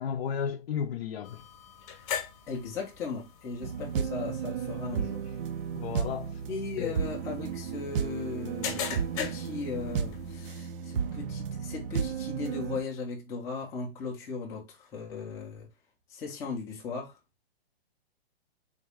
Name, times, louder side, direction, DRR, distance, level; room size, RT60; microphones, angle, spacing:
voice 1, 0.0-1.4 5.8-6.4 6.8-7.0, left 7 dB, 65° left, 0.5 m, -33 dB
sound 1, 1.2-10.5, left 8 dB, 35° left, 0.9 m, -41 dB
voice 2, 2.5-5.3 6.5-15.7 16.1-17.2, left 4 dB, 10° left, 0.5 m, -37 dB
sound 2, 3.6-12.8, right 7 dB, 60° right, 0.5 m, -33 dB
3.9 x 2.3 x 3.3 m
hypercardioid pair, 155°, 31 cm